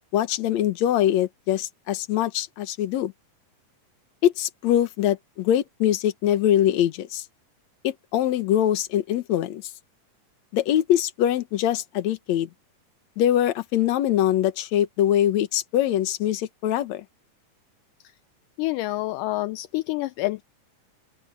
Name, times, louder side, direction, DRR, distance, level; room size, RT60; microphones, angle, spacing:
voice 1, 0.1-3.1 4.2-7.2 7.8-9.6 10.5-12.5 13.2-17.0, left 11 dB, 60° left, 2.2 m, -23 dB
voice 2, 18.6-20.4, left 18 dB, 80° left, 2.1 m, -27 dB
open air
omnidirectional pair, 3.9 m